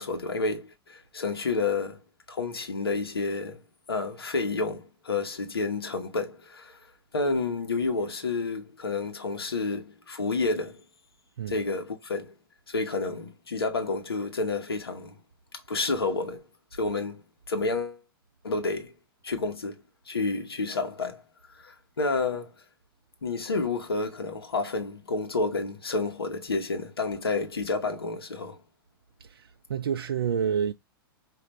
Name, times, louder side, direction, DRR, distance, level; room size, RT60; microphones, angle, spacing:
voice 1, 0.0-2.0 2.3-3.6 3.9-6.8 7.1-10.8 11.5-12.3 12.7-15.1 15.7-16.4 16.8-18.0 18.4-18.9 19.2-19.8 20.1-21.2 21.5-22.5 23.2-28.6, left 3 dB, 85° left, 1.0 m, -30 dB
voice 2, 29.2-30.7, right 7 dB, 80° right, 0.4 m, -29 dB
5.0 x 2.5 x 3.1 m
hypercardioid pair, 105°, 12 cm